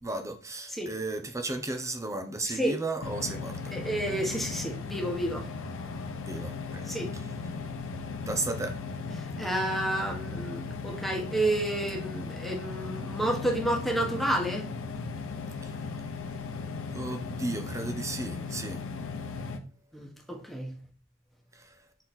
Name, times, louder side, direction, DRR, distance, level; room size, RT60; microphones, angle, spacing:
voice 1, 0.0-3.8 6.2-7.2 8.3-8.8 15.6-15.7 16.9-18.8 21.5-21.7, right 2 dB, 15° right, 0.9 m, -34 dB
sound 1, 3.0-19.6, left 4 dB, 65° left, 0.9 m, -37 dB
voice 2, 3.7-5.5 6.9-7.1 9.4-14.7 19.9-20.8, right 1 dB, ahead, 1.5 m, -30 dB
6.1 x 4.3 x 4.3 m
head